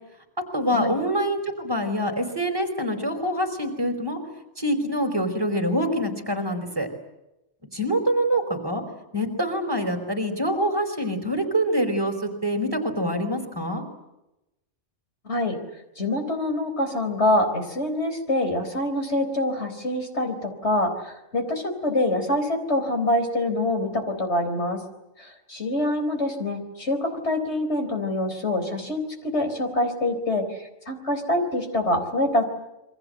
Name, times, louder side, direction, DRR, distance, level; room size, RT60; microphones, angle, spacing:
voice 1, 0.5-4.2 4.6-6.9 7.7-8.8 9.1-13.8, equal, 20° right, 5 dB, 5.0 m, -25 dB
voice 2, 15.2-15.6 16.0-24.8 25.2-32.4, left 1 dB, 65° left, 6 dB, 4.5 m, -25 dB
28.5 x 23.5 x 8.0 m, 0.93 s
omnidirectional pair, 1.2 m